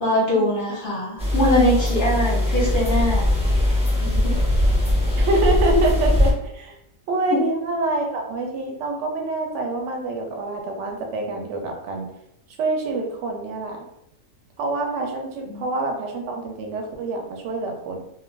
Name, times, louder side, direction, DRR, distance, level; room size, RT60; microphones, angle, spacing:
voice 1, 0.0-3.3 4.0-4.3 7.3-7.4 15.5-15.7, left 1 dB, 45° left, -4 dB, 0.8 m, -22 dB
sound 1, 1.2-6.3, left 1 dB, 5° right, 0.5 m, -20 dB
voice 2, 5.2-6.7 7.1-12.1 12.6-13.9 14.6-18.0, right 2 dB, 65° right, 2 dB, 0.8 m, -26 dB
2.5 x 2.2 x 3.1 m, 0.79 s
omnidirectional pair, 1.5 m